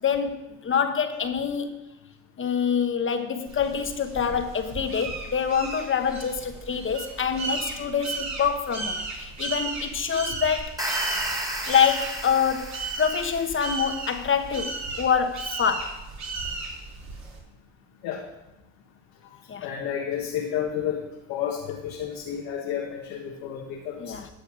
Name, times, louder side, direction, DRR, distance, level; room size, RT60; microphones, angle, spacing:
voice 1, 0.0-1.8 2.4-10.7 11.7-16.0 19.5-19.7 24.0-24.3, left 7 dB, 35° left, 7 dB, 1.2 m, -26 dB
sound 1, 3.5-17.4, right 3 dB, 55° right, 3.2 m, -35 dB
sound 2, 10.6-13.8, right 1 dB, 10° right, 2.5 m, -32 dB
voice 2, 19.6-21.0 21.3-24.0, left 9 dB, 90° left, -1 dB, 1.6 m, -31 dB
12.0 x 6.7 x 6.3 m, 0.96 s
cardioid pair, 90°, 33 cm